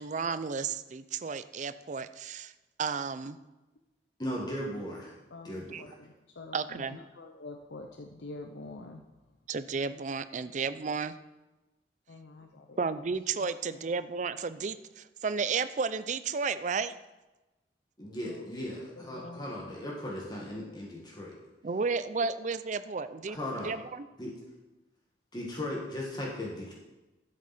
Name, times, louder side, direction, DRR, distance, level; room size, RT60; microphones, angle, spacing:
voice 1, 0.0-2.5 2.8-3.4 5.7-5.8 6.5-7.0 9.5-11.2 12.8-16.9 21.6-24.1, right 5 dB, 45° right, 13 dB, 0.4 m, -33 dB
voice 2, 4.2-5.1 5.4-5.9 18.0-21.3 23.3-23.8 24.2-24.3 25.3-26.7, left 1 dB, 25° left, -3 dB, 1.8 m, -37 dB
voice 3, 5.3-5.9 6.4-9.0 12.1-12.8 13.4-13.8 18.3-18.5 19.1-19.5 20.6-20.7, left 2 dB, 85° left, 4 dB, 0.7 m, -46 dB
12.0 x 7.6 x 4.3 m, 1.1 s
head